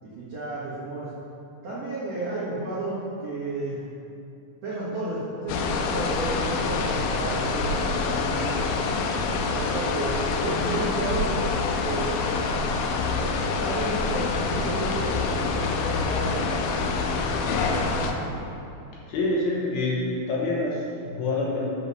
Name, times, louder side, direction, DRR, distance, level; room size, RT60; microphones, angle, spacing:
voice 1, 0.0-1.1 1.6-3.8 4.6-8.6 9.4-11.5 11.8-12.2 13.6-18.4, right 2 dB, 90° right, -10 dB, 1.4 m, -32 dB
sound 1, 5.5-18.1, left 4 dB, 90° left, 3.1 m, -26 dB
voice 2, 19.1-21.7, left 2 dB, 70° left, -4 dB, 2.5 m, -27 dB
7.8 x 5.5 x 6.3 m, 2.6 s
omnidirectional pair, 5.5 m